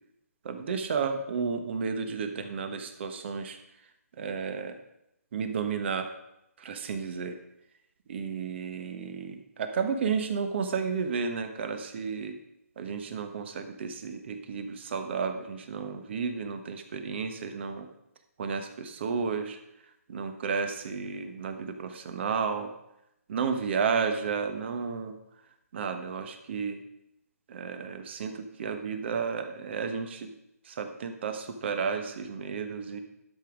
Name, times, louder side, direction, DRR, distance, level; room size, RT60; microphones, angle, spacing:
voice 1, 0.4-3.6 4.2-4.7 5.3-6.1 6.6-7.3 8.1-12.4 12.8-17.9 18.4-19.6 20.1-22.7 23.3-25.1 25.7-26.8 27.5-30.3 30.6-33.0, right 5 dB, 45° right, 7 dB, 1.3 m, -32 dB
12.0 x 6.3 x 5.1 m, 0.82 s
hypercardioid pair, 155°, 9 cm